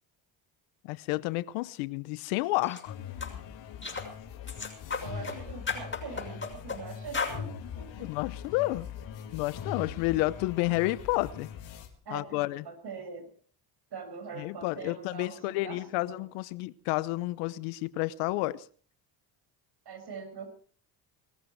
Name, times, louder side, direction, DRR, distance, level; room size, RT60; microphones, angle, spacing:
voice 1, 0.8-2.9 8.0-8.9 9.3-11.5 12.1-12.6 14.4-18.6, left 19 dB, 85° left, 0.9 m, -30 dB
sound 1, 2.6-2.8 3.2-3.3 3.8-4.1 4.5-5.4 5.7-6.8 7.1-7.4, left 4 dB, 25° left, 6.5 m, -34 dB
sound 2, 2.9-11.9, left 7 dB, 65° left, 3.9 m, -42 dB
voice 2, 5.0-8.1 12.0-13.3 13.9-16.3 19.8-20.5, right 5 dB, 55° right, 6.5 m, -43 dB
20.5 x 14.5 x 4.7 m
supercardioid pair, 70°, 48 cm